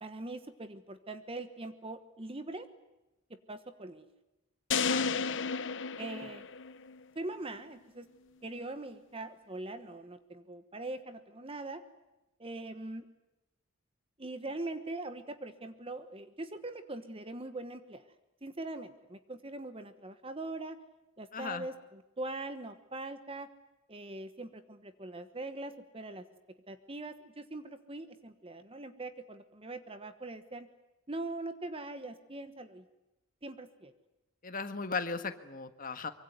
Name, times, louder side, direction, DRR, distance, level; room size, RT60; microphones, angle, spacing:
voice 1, 0.0-2.7 3.3-4.1 6.0-6.5 7.1-8.1 8.4-11.8 12.4-13.1 14.2-18.0 18.4-20.8 21.2-23.5 23.9-26.2 26.7-30.7 31.1-32.8 33.4-33.9, right 2 dB, 25° right, 10 dB, 1.2 m, -42 dB
sound 1, 4.7-7.0, left 5 dB, 60° left, 0.9 m, -32 dB
voice 2, 4.8-5.2 21.3-21.6 34.4-36.1, left 4 dB, 40° left, 9 dB, 1.6 m, -37 dB
24.5 x 24.0 x 9.6 m, 0.99 s
head